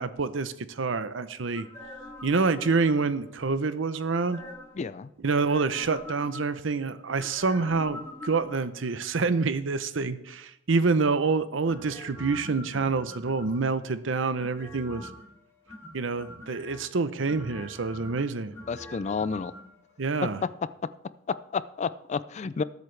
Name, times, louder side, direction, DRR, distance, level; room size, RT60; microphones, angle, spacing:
voice 1, 0.0-1.7 2.2-4.4 5.2-15.1 15.9-18.5 20.0-20.4, right 4 dB, 75° right, 13 dB, 0.7 m, -27 dB
sound 1, 1.5-3.4 4.1-4.8 5.3-6.7 7.2-8.9 11.7-13.8 14.4-15.3 15.7-16.8 17.3-19.6 19.9-20.0, left 1 dB, 15° left, 2.7 m, -44 dB
voice 2, 4.8-5.1 18.7-19.5 21.3-22.6, left 5 dB, 35° left, 17 dB, 0.3 m, -31 dB
19.5 x 8.1 x 3.3 m, 0.81 s
head